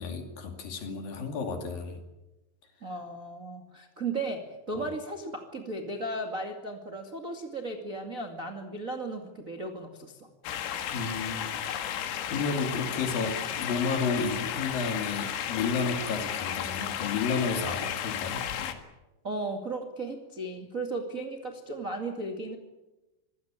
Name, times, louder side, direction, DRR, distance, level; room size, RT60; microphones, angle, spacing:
voice 1, 0.0-2.0 4.7-4.9 10.9-11.5 12.3-18.8, left 4 dB, 50° left, 5 dB, 3.7 m, -32 dB
voice 2, 2.8-10.3 19.2-22.6, right 2 dB, 65° right, 3 dB, 0.8 m, -35 dB
sound 1, 10.4-18.7, left 10 dB, 75° left, 4.3 m, -33 dB
26.0 x 18.0 x 9.0 m, 1.0 s
omnidirectional pair, 5.8 m